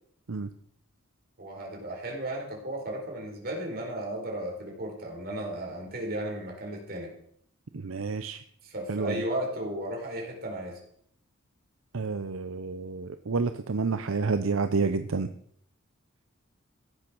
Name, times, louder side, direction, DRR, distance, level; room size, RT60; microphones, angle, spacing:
voice 1, 1.4-7.1 8.6-10.8, right 1 dB, 45° right, 0 dB, 4.3 m, -34 dB
voice 2, 7.7-8.4 8.9-9.2 11.9-15.3, right 4 dB, 75° right, 9 dB, 0.7 m, -29 dB
15.5 x 8.7 x 6.2 m, 0.67 s
head